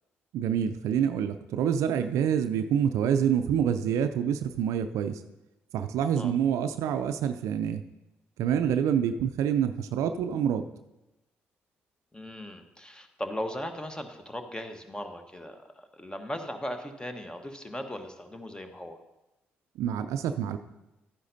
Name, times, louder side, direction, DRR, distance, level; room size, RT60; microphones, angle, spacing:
voice 1, 0.3-5.2 5.7-7.8 8.4-10.7 19.8-20.6, right 8 dB, 70° right, 10 dB, 0.4 m, -27 dB
voice 2, 12.1-19.0, left 1 dB, 15° left, 6 dB, 1.2 m, -38 dB
12.5 x 9.7 x 2.7 m, 0.96 s
hypercardioid pair, 45°, 6 cm